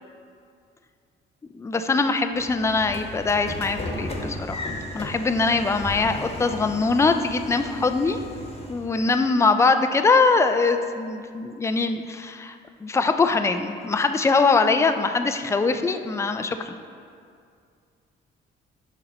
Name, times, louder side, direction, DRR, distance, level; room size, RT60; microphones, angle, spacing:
voice 1, 1.5-4.7 4.9-8.2 8.7-12.6 12.8-16.7, left 4 dB, 15° left, 8 dB, 0.4 m, -22 dB
Train / Sliding door, 2.4-8.9, left 1 dB, 30° left, 1.1 m, -35 dB
6.8 x 5.3 x 4.2 m, 2.3 s
cardioid pair, 90°, 20 cm